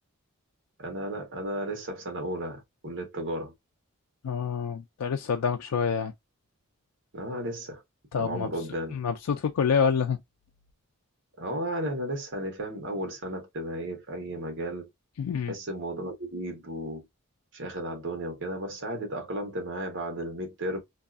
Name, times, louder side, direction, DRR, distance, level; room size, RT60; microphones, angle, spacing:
voice 1, 0.8-3.5 7.1-7.8 8.2-9.0 11.4-14.9 15.5-17.0 17.5-20.8, right 1 dB, 55° right, 1.1 m, -34 dB
voice 2, 4.2-6.1 8.1-8.5 8.9-10.2 15.2-15.5, left 6 dB, 90° left, 0.4 m, -27 dB
2.6 x 2.4 x 2.4 m
head